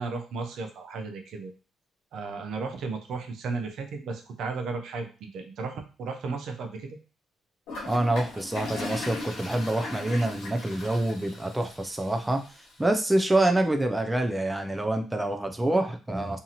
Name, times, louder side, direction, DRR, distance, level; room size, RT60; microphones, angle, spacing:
voice 1, 0.0-1.5 2.1-6.9, right 4 dB, 75° right, 5 dB, 0.5 m, -34 dB
Toilet flush, 7.7-12.7, left 2 dB, 85° left, 0.9 m, -39 dB
voice 2, 7.9-12.4 12.8-16.4, right 1 dB, 10° right, 5 dB, 0.4 m, -26 dB
2.7 x 2.5 x 2.8 m, 0.35 s
cardioid pair, 90°, 0 cm